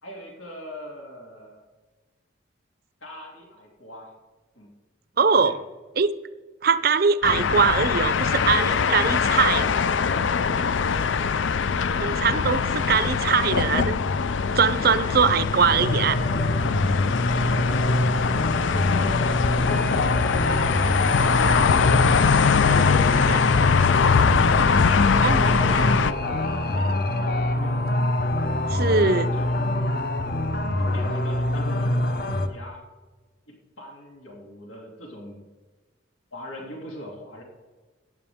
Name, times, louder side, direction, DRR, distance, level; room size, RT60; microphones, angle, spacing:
voice 1, 0.0-1.6 3.0-4.1 4.5-4.7 5.3-5.6 12.8-13.7 15.7-16.6 18.2-23.0 24.5-27.8 28.6-29.6 30.2-30.3 30.8-32.9 33.5-35.5 36.3-37.4, equal, 85° left, -1 dB, 2.7 m, -41 dB
voice 2, 5.2-5.6 6.0-6.1 6.6-9.7 12.0-14.0 14.5-16.2 22.8-22.9 23.2-23.4 25.2-25.5 28.7-29.3, right 5 dB, 50° right, 14 dB, 0.5 m, -22 dB
sound 1, 7.2-26.1, left 6 dB, 70° left, 0.4 m, -22 dB
sound 2, 15.8-32.5, left 1 dB, 50° left, 0.8 m, -25 dB
14.5 x 9.9 x 3.6 m, 1.3 s
head